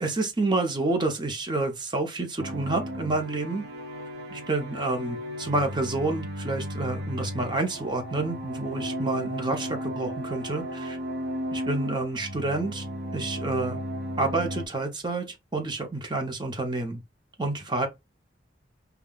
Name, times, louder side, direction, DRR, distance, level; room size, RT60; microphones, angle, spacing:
voice 1, 0.0-3.6 4.3-11.0 11.5-12.8 13.1-13.8 14.2-17.0 17.4-17.9, right 2 dB, 25° right, 0.8 m, -29 dB
sound 1, 2.4-14.7, equal, 60° right, 0.8 m, -35 dB
5.5 x 2.3 x 2.4 m
head